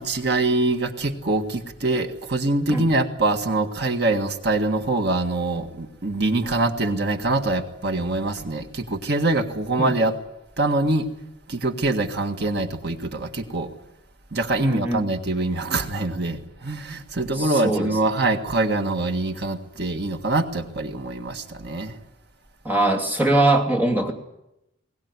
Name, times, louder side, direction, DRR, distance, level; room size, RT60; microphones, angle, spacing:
voice 1, 0.0-10.1 10.6-11.1 11.5-13.7 14.3-21.9, right 2 dB, 60° right, 6 dB, 1.7 m, -24 dB
voice 2, 14.6-15.0 17.3-17.9 22.6-24.1, right 2 dB, 10° right, 0 dB, 2.7 m, -22 dB
21.0 x 18.5 x 9.7 m, 0.86 s
head